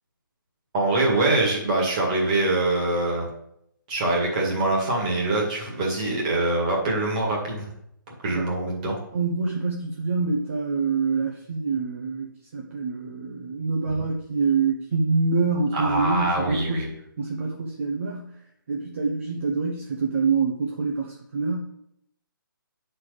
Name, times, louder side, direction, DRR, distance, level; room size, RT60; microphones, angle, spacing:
voice 1, 0.7-3.3 3.9-7.7 8.2-9.0 15.7-16.9, right 2 dB, 20° right, -2 dB, 1.9 m, -24 dB
voice 2, 9.1-18.4 18.7-21.6, right 4 dB, 40° right, 0 dB, 0.9 m, -26 dB
9.4 x 4.4 x 5.0 m, 0.76 s
hypercardioid pair, 170°, 12 cm